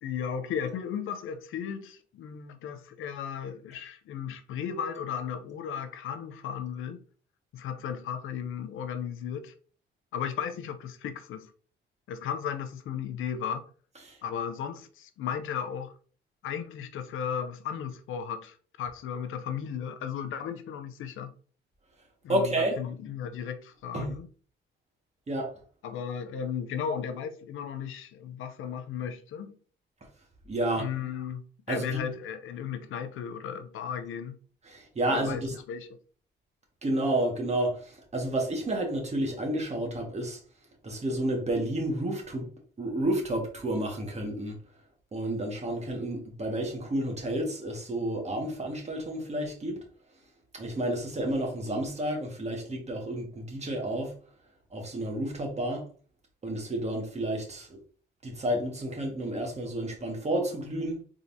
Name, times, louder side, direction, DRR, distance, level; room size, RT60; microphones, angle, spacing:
voice 1, 0.0-7.0 7.5-9.5 10.1-11.5 12.1-13.7 14.2-15.9 16.4-21.3 22.2-24.3 25.8-29.6 30.8-34.4 35.1-36.0, left 8 dB, 85° left, 0.6 m, -35 dB
voice 2, 22.3-22.8 23.9-24.1 25.3-25.5 30.4-30.9 31.7-32.0 34.6-35.5 36.8-40.4 40.8-42.5 42.8-44.6 45.1-49.8 50.5-54.1 54.7-55.9 56.4-57.8 58.2-61.0, right 1 dB, 35° right, 1.7 m, -30 dB
4.1 x 3.7 x 2.7 m
cardioid pair, 90°, 20 cm